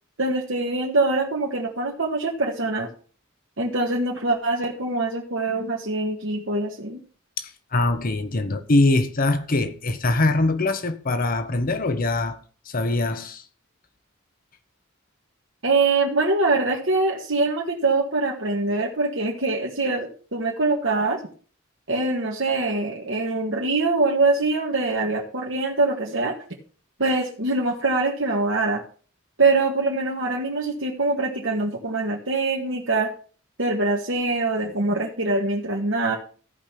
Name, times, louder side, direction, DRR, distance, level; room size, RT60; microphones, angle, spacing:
voice 1, 0.2-2.9 3.6-7.0 15.6-21.2 21.9-26.3 27.0-28.8 29.4-33.1 33.6-36.2, right 3 dB, 65° right, 1.8 m, -23 dB
voice 2, 7.4-12.4 12.6-13.4, left 2 dB, 45° left, 0.9 m, -23 dB
14.0 x 5.2 x 5.9 m
head